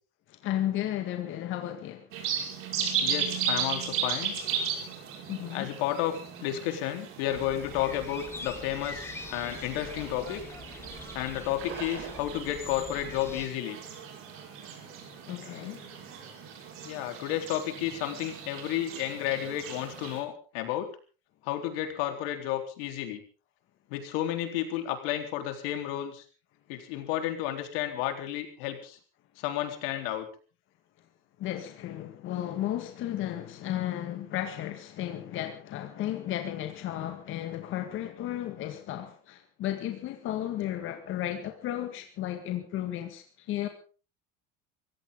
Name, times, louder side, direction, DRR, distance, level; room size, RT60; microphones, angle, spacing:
voice 1, 0.3-2.1 5.3-5.7 15.3-15.9 31.4-43.7, left 12 dB, 45° left, 1.9 m, -34 dB
sound 1, 2.1-20.2, right 6 dB, 45° right, 5.5 m, -36 dB
voice 2, 3.0-4.4 5.5-10.4 11.1-13.8 16.8-20.9 21.4-23.2 23.9-26.2 26.7-29.0 29.4-30.3, left 12 dB, 80° left, 3.9 m, -32 dB
sound 2, 7.3-13.5, left 3 dB, 10° left, 1.4 m, -44 dB
23.5 x 16.0 x 3.9 m
cardioid pair, 165°, 29 cm